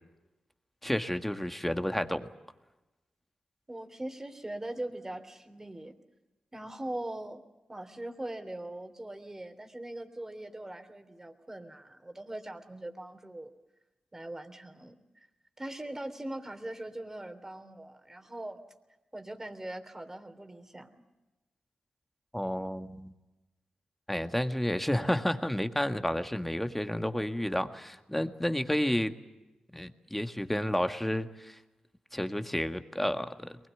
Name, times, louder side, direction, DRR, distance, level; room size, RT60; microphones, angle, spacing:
voice 1, 0.8-2.3 22.3-23.1 24.1-29.1 29.7-31.6 32.1-33.5, left 1 dB, 5° left, 8 dB, 1.8 m, -31 dB
voice 2, 3.7-5.9 6.5-7.4 7.7-13.5 14.1-15.3 15.6-18.6 19.1-20.9, right 1 dB, 20° right, 7 dB, 3.2 m, -41 dB
23.0 x 20.5 x 9.2 m, 1.1 s
cardioid pair, 55°, 2 cm